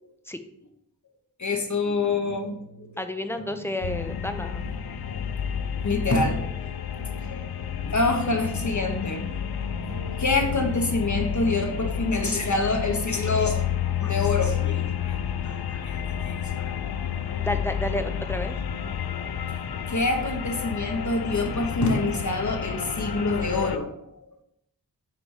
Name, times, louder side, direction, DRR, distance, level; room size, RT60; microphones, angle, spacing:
voice 1, 1.4-2.9 5.1-5.2 5.8-6.8 7.1-9.7 10.1-13.6 14.0-15.2 15.4-16.8 18.9-19.2 19.9-23.9, left 2 dB, 50° left, 4 dB, 1.1 m, -27 dB
sound 1, 1.9-3.0 3.3-4.2 4.6-7.6 7.8-11.3, right 3 dB, 60° right, 1.5 m, -45 dB
voice 2, 3.0-4.6 17.4-18.6, left 1 dB, 5° left, 8 dB, 0.6 m, -31 dB
sound 2, 3.8-23.8, left 9 dB, 75° left, 0.5 m, -30 dB
6.1 x 4.2 x 4.9 m, 0.77 s
wide cardioid pair, 70°, 38 cm